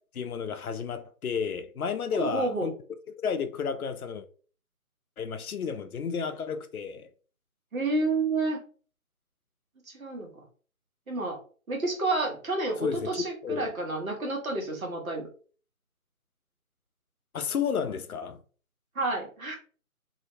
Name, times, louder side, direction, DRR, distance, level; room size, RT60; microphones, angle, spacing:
voice 1, 0.1-2.7 3.2-4.3 5.2-7.1 12.8-13.7 17.3-18.4, left 6 dB, 80° left, 0.6 m, -32 dB
voice 2, 2.1-2.7 7.7-8.6 9.9-10.4 11.1-11.4 11.7-15.3 18.9-19.6, right 2 dB, 70° right, 1.2 m, -30 dB
2.7 x 2.1 x 2.6 m
figure-of-eight pair, 155°, 43 cm